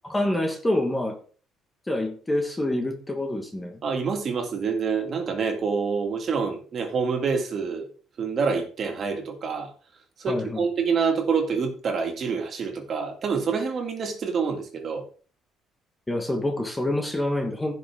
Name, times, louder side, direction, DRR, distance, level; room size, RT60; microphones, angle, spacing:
voice 1, 0.0-1.2 1.9-3.8 10.3-10.6 16.1-17.8, left 1 dB, 10° left, 4 dB, 1.4 m, -27 dB
voice 2, 3.8-7.9 8.2-9.7 10.2-15.0, right 5 dB, 35° right, 3 dB, 2.4 m, -27 dB
15.5 x 6.3 x 3.6 m, 0.40 s
cardioid pair, 165°, 0 cm